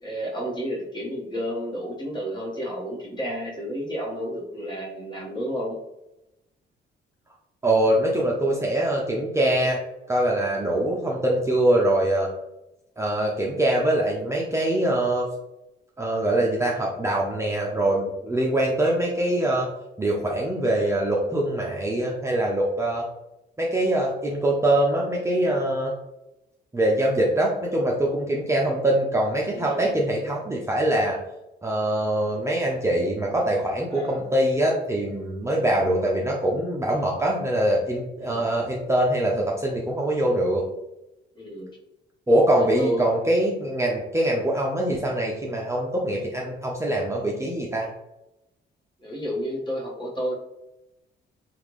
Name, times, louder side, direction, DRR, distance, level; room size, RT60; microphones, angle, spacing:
voice 1, 0.0-5.8 29.5-30.0 33.9-34.3 35.4-35.7 38.2-38.5 41.3-41.7 42.6-43.0 49.0-50.3, equal, 20° left, -5 dB, 1.4 m, -31 dB
voice 2, 7.6-9.8 10.1-12.3 13.0-15.3 16.0-19.7 20.0-23.0 23.6-25.9 26.7-31.2 31.6-40.6 42.3-47.9, right 1 dB, 15° right, -3 dB, 0.6 m, -23 dB
3.5 x 2.5 x 3.1 m, 0.91 s
cardioid pair, 90°, 20 cm